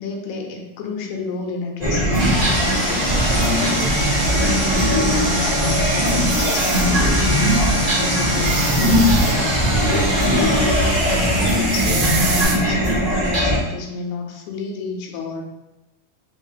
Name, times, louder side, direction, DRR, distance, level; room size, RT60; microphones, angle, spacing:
voice 1, 0.0-7.6 7.9-9.1 9.9-15.4, left 3 dB, 80° left, 0 dB, 1.6 m, -30 dB
sound 1, 1.8-13.6, equal, 35° right, 0.7 m, -20 dB
Sawing, 2.2-12.4, equal, 70° right, 0.7 m, -25 dB
sound 2, 6.2-6.9 8.3-9.3 11.7-12.6, right 6 dB, 85° right, 2.1 m, -28 dB
4.7 x 2.4 x 2.8 m, 0.93 s
omnidirectional pair, 3.6 m